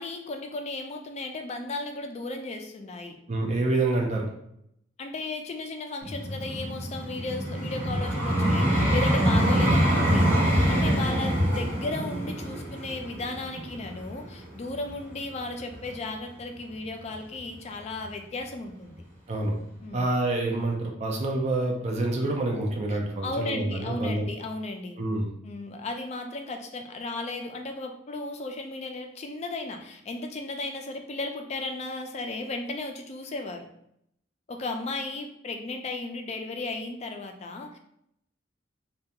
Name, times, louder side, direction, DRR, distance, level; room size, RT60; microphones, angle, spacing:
voice 1, 0.0-3.2 5.0-19.0 19.8-20.1 22.9-25.0 25.4-33.7 34.5-37.8, left 2 dB, 35° left, 4 dB, 0.3 m, -35 dB
voice 2, 3.3-4.3 19.3-19.5 19.9-24.3 25.0-25.3, right 2 dB, 35° right, 1 dB, 0.4 m, -27 dB
Vehicle, 6.0-15.1 15.7-15.9, equal, 10° right, 1.0 m, -25 dB
2.4 x 2.2 x 2.7 m, 0.75 s
head